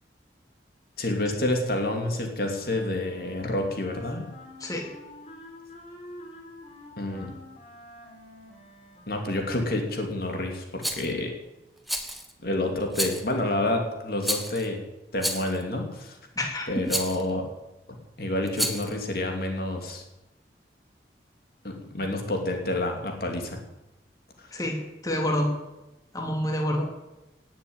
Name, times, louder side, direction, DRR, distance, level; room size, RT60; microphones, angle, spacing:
voice 1, 1.0-4.3 7.0-7.3 9.1-11.3 12.4-14.9 15.1-16.2 16.7-17.4 17.9-20.0 21.6-23.6 24.4-24.6, left 1 dB, 55° left, 3 dB, 2.7 m, -29 dB
Wind instrument woodwind instrument, 2.4-9.9, left 1 dB, 40° left, 4.0 m, -48 dB
Rattle, 10.8-11.1 11.9-12.3 12.9-13.3 14.2-14.7 15.2-15.6 16.9-17.2 18.5-18.9, equal, ahead, 1.5 m, -30 dB
voice 2, 16.4-16.7 24.5-25.5 26.1-26.9, left 1 dB, 20° left, 1 dB, 2.7 m, -28 dB
19.0 x 7.3 x 8.8 m, 0.98 s
head